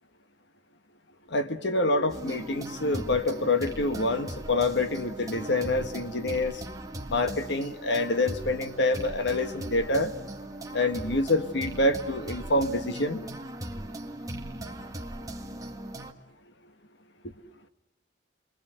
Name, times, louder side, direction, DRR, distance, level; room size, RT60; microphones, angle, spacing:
voice 1, 1.3-6.6 7.1-10.1 10.7-13.2, left 2 dB, 70° left, 9 dB, 1.6 m, -26 dB
sound 1, 2.1-16.1, right 1 dB, 20° right, 1.9 m, -39 dB
30.0 x 23.0 x 7.9 m, 0.87 s
head